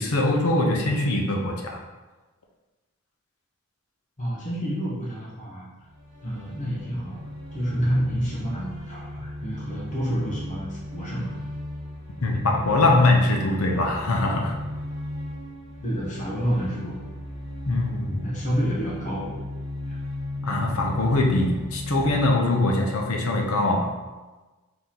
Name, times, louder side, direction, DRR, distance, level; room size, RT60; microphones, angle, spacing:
voice 1, 0.0-1.8 12.2-14.5 17.7-18.2 20.4-23.9, left 2 dB, 70° left, 1 dB, 0.7 m, -22 dB
voice 2, 4.2-5.7 6.2-7.2 7.5-11.3 15.8-17.0 18.2-19.4 19.9-20.0, equal, 35° left, -6 dB, 0.9 m, -29 dB
sound 1, 5.8-22.3, left 1 dB, 80° right, 1.1 m, -36 dB
3.9 x 2.9 x 3.8 m, 1.2 s
head